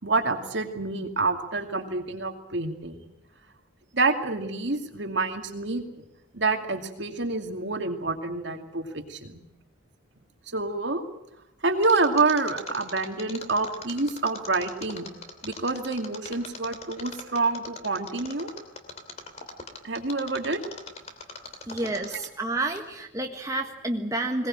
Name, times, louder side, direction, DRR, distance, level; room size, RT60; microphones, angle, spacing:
voice 1, 0.0-3.0 3.9-5.9 6.3-9.5 10.5-11.0 11.6-15.1 15.4-18.5 19.8-20.6 22.1-22.2, right 3 dB, 60° right, 5 dB, 2.5 m, -27 dB
Mechanisms, 11.8-22.4 22.7-22.8, left 4 dB, 35° left, 2.8 m, -41 dB
voice 2, 21.7-24.5, right 2 dB, 15° right, 2 dB, 1.5 m, -30 dB
21.5 x 18.5 x 8.9 m, 0.86 s
head